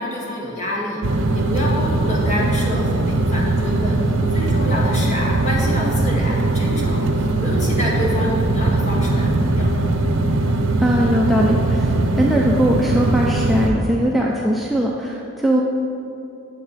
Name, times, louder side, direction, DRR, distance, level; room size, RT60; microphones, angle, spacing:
voice 1, 0.0-4.0 4.3-9.7, equal, 35° left, -3 dB, 1.8 m, -27 dB
sound 1, 1.0-13.7, right 2 dB, 65° right, 0.7 m, -20 dB
voice 2, 10.8-15.6, equal, ahead, -4 dB, 0.5 m, -20 dB
9.8 x 7.7 x 4.2 m, 2.8 s
head